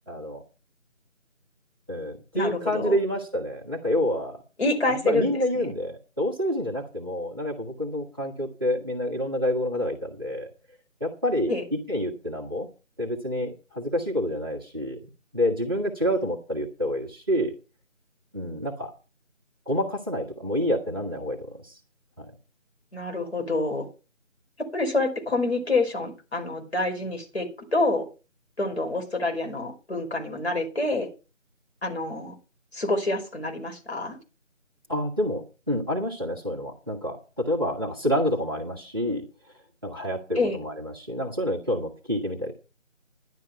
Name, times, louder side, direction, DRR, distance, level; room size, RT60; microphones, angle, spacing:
voice 1, 0.1-0.4 1.9-4.4 5.0-10.5 11.0-12.7 13.0-15.0 15.3-17.5 18.3-18.9 19.7-21.8 22.2-22.3 34.9-39.3 39.8-42.5, equal, 20° right, -5 dB, 1.4 m, -28 dB
voice 2, 2.3-3.0 4.6-5.3 5.6-5.7 11.5-11.6 22.9-23.9 24.7-28.1 28.6-31.1 31.8-32.3 32.7-34.2 40.3-40.6, left 2 dB, 55° left, 3 dB, 5.0 m, -27 dB
12.0 x 11.0 x 4.6 m, 0.32 s
figure-of-eight pair, 165°, 39 cm